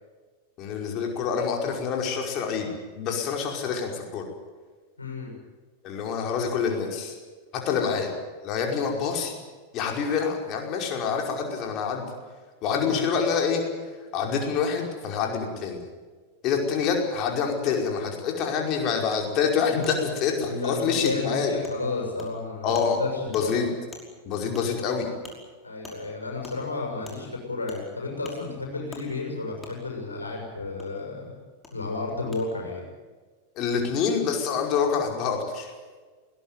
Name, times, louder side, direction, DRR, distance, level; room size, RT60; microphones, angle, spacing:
voice 1, 0.6-2.7 3.0-4.2 5.8-7.1 7.5-8.1 8.4-9.3 9.7-12.1 12.6-13.6 14.1-15.8 16.4-21.5 22.6-23.0 23.3-23.7 24.2-25.1 33.6-35.7, left 6 dB, 35° left, 2 dB, 5.3 m, -26 dB
voice 2, 5.0-5.3 7.8-8.0 12.7-12.9 20.4-23.7 25.6-31.4 31.7-32.8, left 3 dB, 80° left, 0 dB, 6.6 m, -32 dB
Wood, 19.1-19.2 19.8-19.9 20.4-20.5 21.0-21.2 21.6-21.8 22.2-22.3 22.7-22.9 23.3-23.4 23.9-24.0 24.5-24.7 25.2-25.4 25.8-26.0 26.4-26.6 27.0-27.2 27.7-27.8 28.2-28.4 28.9-29.0 29.6-29.7 30.8-30.9 31.6-31.7 32.3-32.4, left 3 dB, 10° left, 5.4 m, -44 dB
21.5 x 19.0 x 9.5 m, 1.4 s
figure-of-eight pair, 90°, 0 cm